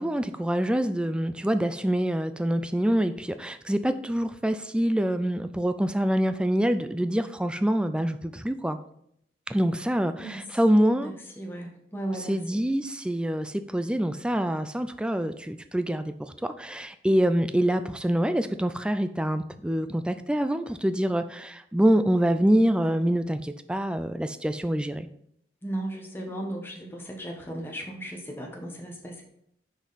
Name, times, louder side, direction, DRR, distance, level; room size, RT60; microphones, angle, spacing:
voice 1, 0.0-8.8 9.5-11.1 12.2-25.1, equal, 5° right, 10 dB, 0.3 m, -25 dB
voice 2, 10.6-12.6 22.9-23.1 25.6-29.2, right 1 dB, 15° left, 0 dB, 1.2 m, -36 dB
6.1 x 5.4 x 4.0 m, 0.73 s
head